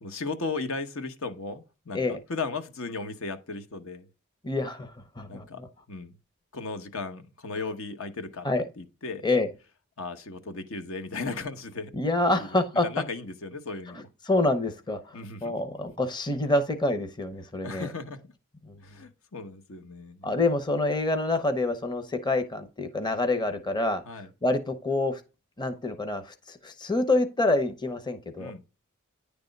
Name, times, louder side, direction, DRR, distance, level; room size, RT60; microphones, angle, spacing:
voice 1, 0.0-4.1 5.3-5.6 5.9-6.1 6.5-8.5 8.8-9.2 10.0-11.9 12.4-12.5 12.8-14.1 15.1-15.5 17.6-18.2 18.8-20.3 24.0-24.3 28.4-28.6, left 3 dB, 70° left, 1.1 m, -36 dB
voice 2, 4.4-4.9 5.2-5.7 8.4-8.6 9.2-9.5 11.9-12.8 13.9-17.9 18.6-18.8 20.2-24.0 24.4-25.2 25.6-28.5, left 2 dB, 20° left, 0.7 m, -27 dB
9.9 x 3.5 x 5.2 m
head